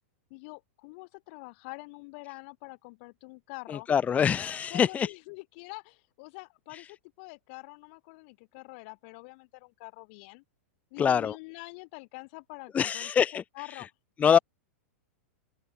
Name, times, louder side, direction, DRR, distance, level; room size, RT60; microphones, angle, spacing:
voice 1, 0.3-3.9 4.7-10.4 10.9-13.9 14.2-14.4, left 29 dB, 55° left, 6.3 m, -45 dB
voice 2, 3.7-5.1 11.0-11.3 12.7-13.4 13.7-13.8 14.2-14.4, left 7 dB, 20° left, 0.8 m, -24 dB
open air
hypercardioid pair, 125°, 7 cm